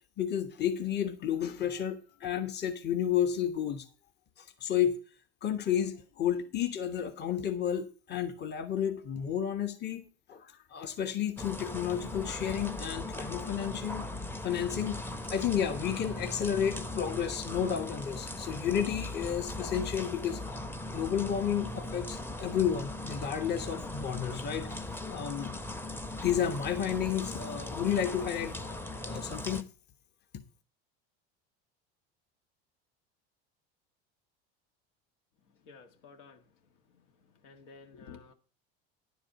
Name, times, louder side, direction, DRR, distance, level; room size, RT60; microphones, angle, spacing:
voice 1, 0.2-3.8 4.4-5.0 5.4-14.1 14.4-20.4 20.9-24.7 25.0-25.5 25.9-29.7, left 9 dB, 35° left, 1.3 m, -32 dB
sound 1, 11.4-29.6, left 2 dB, 5° left, 0.8 m, -39 dB
voice 2, 35.7-36.4 37.4-38.3, left 5 dB, 75° left, 1.8 m, -51 dB
10.5 x 4.8 x 8.0 m
supercardioid pair, 105°, 31 cm